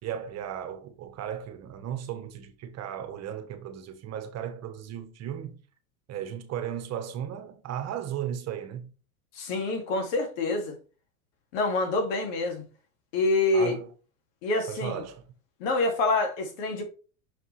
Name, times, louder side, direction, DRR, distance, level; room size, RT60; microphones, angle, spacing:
voice 1, 0.0-5.6 6.1-8.9 13.5-13.9 14.7-15.2, right 9 dB, 40° right, 1.3 m, -35 dB
voice 2, 9.4-10.7 11.5-12.6 13.1-13.7 14.4-15.0 15.6-16.8, left 2 dB, 65° left, 2.7 m, -26 dB
6.1 x 5.6 x 3.3 m
hypercardioid pair, 90°, 41 cm